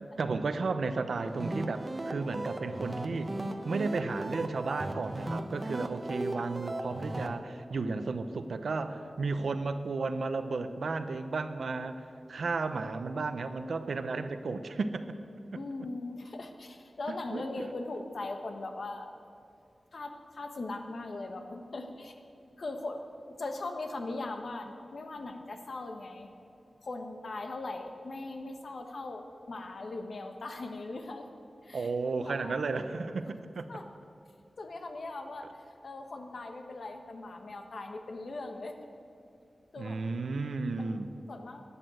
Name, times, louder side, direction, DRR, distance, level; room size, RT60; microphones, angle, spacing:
voice 1, 0.0-3.3 3.6-12.0 12.3-15.1 17.1-17.7 31.7-33.7 39.8-41.1, right 3 dB, 80° right, 10 dB, 0.8 m, -33 dB
sound 1, 1.2-7.3, right 1 dB, 30° right, 1.0 m, -37 dB
voice 2, 15.5-19.1 19.9-22.2 22.6-23.0 23.4-26.3 26.8-31.3 31.6-31.9 32.2-32.6 33.7-33.8 34.6-38.8 39.7-40.0 40.8-41.0 41.3-41.6, left 2 dB, 65° left, 5 dB, 1.3 m, -40 dB
12.0 x 9.9 x 7.8 m, 2.6 s
wide cardioid pair, 95°, 0 cm